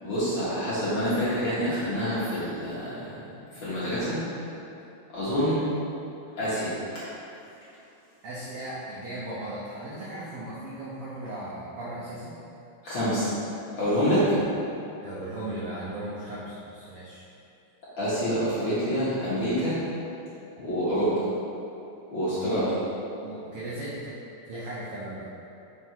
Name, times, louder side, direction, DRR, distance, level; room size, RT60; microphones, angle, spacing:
voice 1, 0.0-3.2 3.5-4.2 5.1-5.6 6.4-6.7 12.8-13.3 13.8-14.4 18.0-19.8 20.6-21.3 22.1-22.8, equal, 50° left, -12 dB, 1.6 m, -26 dB
voice 2, 8.2-12.4 15.0-17.2 22.3-22.6 23.2-24.1 24.5-25.3, right 1 dB, 75° right, -7 dB, 1.3 m, -37 dB
6.0 x 3.5 x 4.5 m, 2.8 s
omnidirectional pair, 3.6 m